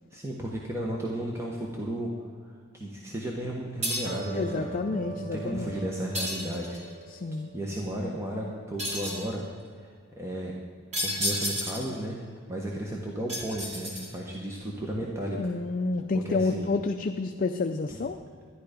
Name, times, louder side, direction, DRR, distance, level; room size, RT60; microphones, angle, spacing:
voice 1, 0.1-2.1 2.7-6.8 7.5-9.4 9.8-9.9 10.2-10.5 11.0-12.2 12.5-15.5 16.1-16.7 17.9-18.0, right 1 dB, 15° right, -2 dB, 1.2 m, -34 dB
sound 1, 3.8-4.3 6.1-6.9 8.8-9.3 10.9-12.0 13.3-14.3, equal, 35° right, 2.3 m, -31 dB
sound 2, 4.1-10.6, right 4 dB, 50° right, 1.0 m, -45 dB
voice 2, 4.3-5.7 7.1-7.5 15.4-18.2, left 3 dB, 40° left, 6 dB, 0.4 m, -29 dB
11.5 x 11.0 x 5.1 m, 2.1 s
head